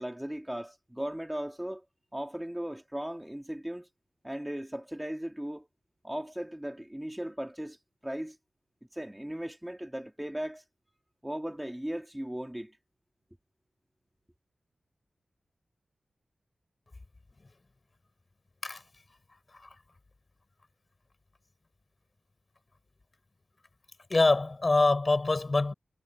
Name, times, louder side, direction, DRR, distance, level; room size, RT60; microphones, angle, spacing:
voice 1, 0.0-1.8 2.1-3.9 4.2-5.7 6.0-8.4 8.9-10.6 11.2-12.8, equal, 5° right, 3.2 m, -37 dB
voice 2, 24.1-25.7, left 3 dB, 35° left, 5.0 m, -25 dB
wide cardioid pair, 110°, 0 cm